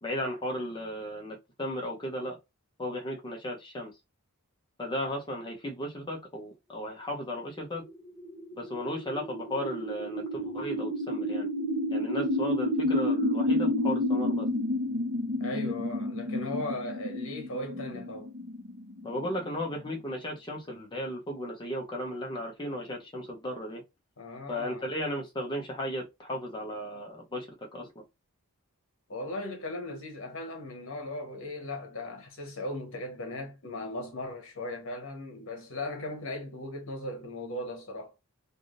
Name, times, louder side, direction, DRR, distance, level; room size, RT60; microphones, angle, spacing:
voice 1, 0.0-2.4 2.8-3.9 4.8-7.8 8.5-11.5 11.9-14.5 19.0-23.8 24.5-28.0, equal, 20° left, 0.8 m, -35 dB
sound 1, 7.9-19.9, left 1 dB, 50° right, 1.0 m, -30 dB
voice 2, 15.4-18.3 24.2-24.9 29.1-38.1, left 1 dB, 60° left, 1.1 m, -37 dB
3.3 x 2.6 x 2.5 m
head